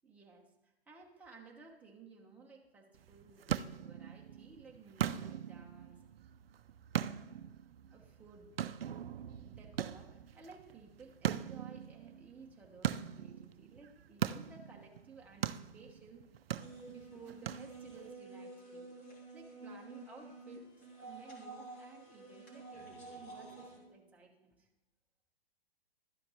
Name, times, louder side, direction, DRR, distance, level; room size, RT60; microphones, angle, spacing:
voice 1, 0.0-6.0 7.9-8.7 9.4-16.3 16.9-24.7, right 4 dB, 5° right, -2 dB, 1.0 m, -56 dB
sound 1, 2.9-18.1, right 9 dB, 70° right, 0.5 m, -41 dB
sound 2, 16.6-23.8, right 3 dB, 25° left, 2.1 m, -50 dB
11.5 x 8.3 x 3.2 m, 0.93 s
figure-of-eight pair, 125°, 30 cm